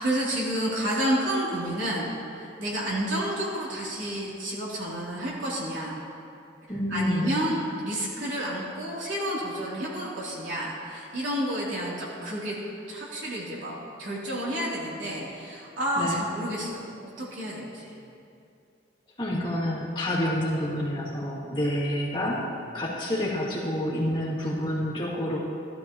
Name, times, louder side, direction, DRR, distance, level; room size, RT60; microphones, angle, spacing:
voice 1, 0.0-6.0 6.9-12.6 12.9-16.9 17.2-17.9, right 1 dB, 80° right, -6 dB, 3.1 m, -30 dB
voice 2, 6.7-7.4 16.0-16.2 19.2-22.4 22.7-25.4, left 1 dB, 25° left, -8 dB, 2.4 m, -28 dB
15.5 x 13.0 x 3.0 m, 2.6 s
head